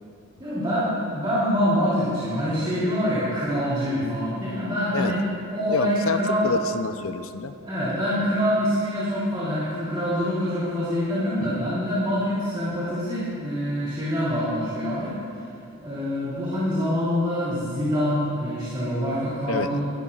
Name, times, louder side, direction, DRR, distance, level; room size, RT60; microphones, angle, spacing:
voice 1, 0.4-5.2 5.5-6.5 7.6-15.1 15.8-19.8, equal, 25° right, -11 dB, 3.0 m, -25 dB
voice 2, 5.7-7.5 11.4-11.6 19.5-19.7, left 4 dB, 70° left, 9 dB, 0.6 m, -28 dB
22.5 x 12.5 x 2.4 m, 2.5 s
head